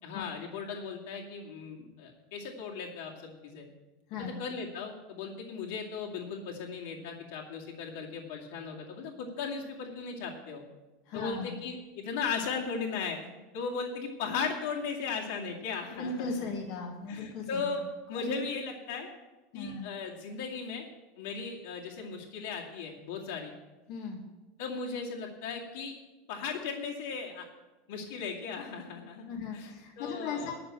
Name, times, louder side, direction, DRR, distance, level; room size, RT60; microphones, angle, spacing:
voice 1, 0.0-3.7 4.1-10.6 11.1-13.2 13.5-16.5 17.1-17.8 18.1-19.1 19.5-20.9 21.2-23.5 24.6-25.9 26.3-27.4 27.9-29.3 29.5-30.6, left 5 dB, 65° left, -2 dB, 2.3 m, -37 dB
voice 2, 4.1-4.4 11.1-11.6 15.9-17.7 18.1-18.4 19.5-19.9 23.9-24.2 29.3-30.6, left 3 dB, 45° left, 1 dB, 1.7 m, -37 dB
11.0 x 6.9 x 8.7 m, 1.1 s
supercardioid pair, 170°, 0 cm